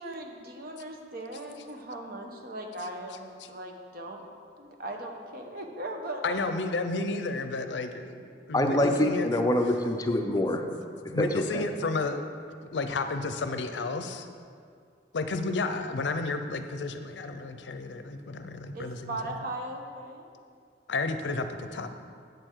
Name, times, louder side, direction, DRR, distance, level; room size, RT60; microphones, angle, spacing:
voice 1, 0.0-4.2 4.6-6.4 18.7-20.3, right 1 dB, 55° right, 3 dB, 0.9 m, -38 dB
voice 2, 6.2-9.3 11.1-12.3 12.7-14.3 15.1-19.2 20.9-21.9, left 3 dB, 75° left, 8 dB, 0.5 m, -32 dB
voice 3, 8.5-10.6 11.2-11.7, left 1 dB, 20° left, 4 dB, 0.5 m, -25 dB
7.9 x 6.8 x 4.5 m, 2.2 s
head